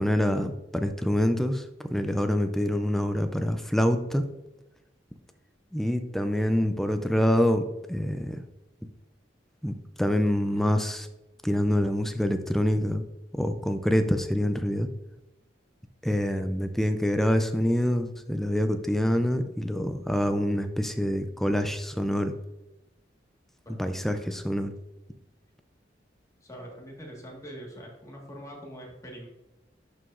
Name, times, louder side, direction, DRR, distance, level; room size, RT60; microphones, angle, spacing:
voice 1, 0.0-4.2 5.7-7.6 7.9-8.4 9.6-9.7 10.0-11.1 11.4-13.1 13.4-14.9 16.0-22.3 23.8-24.7, equal, ahead, 8 dB, 0.4 m, -26 dB
voice 2, 23.6-24.7 26.4-29.3, equal, 20° left, -1 dB, 1.5 m, -44 dB
11.0 x 4.8 x 2.5 m, 0.96 s
head